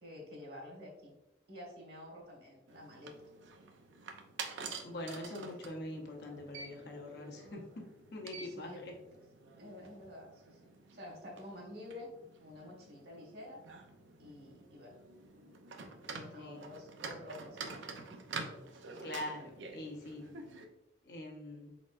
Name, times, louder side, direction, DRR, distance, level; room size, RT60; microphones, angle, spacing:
voice 1, 0.0-1.1 1.5-3.3 5.3-5.4 8.4-8.8 9.6-12.1 12.4-13.6 14.2-14.9 16.1-17.8 18.1-18.2, left 1 dB, 55° right, -1 dB, 1.5 m, -50 dB
sound 1, 2.7-20.7, right 4 dB, 80° right, 0.6 m, -48 dB
voice 2, 4.8-7.6 8.1-8.9 16.4-16.6 19.0-20.3 21.0-21.7, left 1 dB, 60° left, 0 dB, 0.9 m, -43 dB
4.3 x 4.1 x 2.5 m, 0.98 s
head